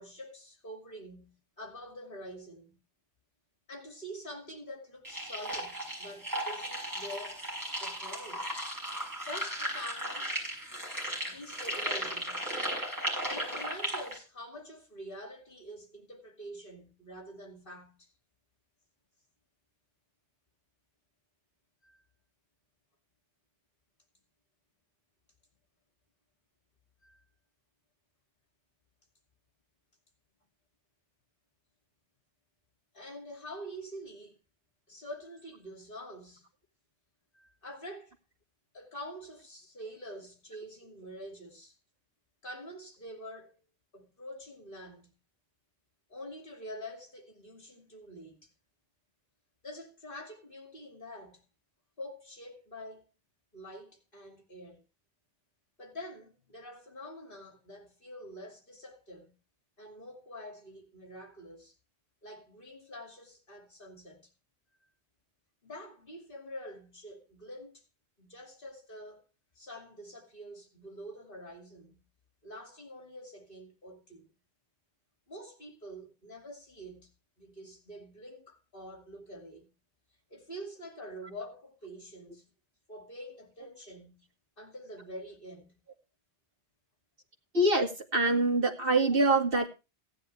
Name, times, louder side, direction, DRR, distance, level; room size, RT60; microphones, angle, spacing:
voice 1, 0.0-2.8 3.7-7.4 7.8-8.5 9.3-10.3 11.3-12.4 13.3-18.1 21.8-22.0 27.0-27.2 32.9-34.4 34.9-36.4 37.3-38.1 38.7-41.7 42.4-43.6 43.9-45.1 46.1-48.5 49.6-51.4 52.0-53.0 53.5-54.8 55.8-59.3 59.8-61.7 62.2-64.3 65.6-67.8 68.2-69.2 69.6-72.0 72.4-74.3 75.3-77.1 77.4-79.7 80.3-82.5 82.9-84.2 84.6-85.8, equal, 55° left, 2.9 m, -46 dB
sound 1, 5.0-14.2, right 1 dB, 20° right, 5.9 m, -36 dB
voice 2, 87.5-89.7, right 2 dB, 60° right, 2.3 m, -25 dB
16.5 x 10.0 x 3.3 m
omnidirectional pair, 1.1 m